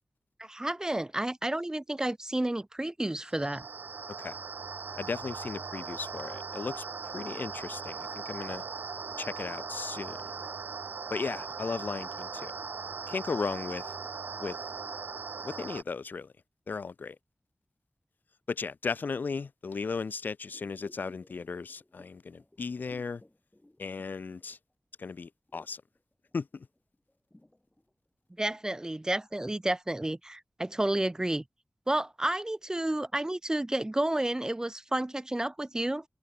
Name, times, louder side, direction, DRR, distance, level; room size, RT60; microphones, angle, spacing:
voice 1, 0.4-3.7 28.4-31.4 31.9-36.0, right 1 dB, 20° right, 0.4 m, -31 dB
sound 1, 3.2-15.8, right 5 dB, 85° right, 0.5 m, -39 dB
voice 2, 4.9-6.8 7.1-8.6 9.2-10.3 11.1-12.5 13.1-13.9 14.4-14.6 15.4-16.3 16.7-17.2 18.5-23.2 23.8-24.6 25.0-25.8 26.3-26.7, left 4 dB, 85° left, 0.5 m, -36 dB
sound 2, 20.5-24.9 25.2-28.7 29.1-29.2, left 1 dB, 20° left, 7.0 m, -60 dB
wide cardioid pair, 50°, 3 cm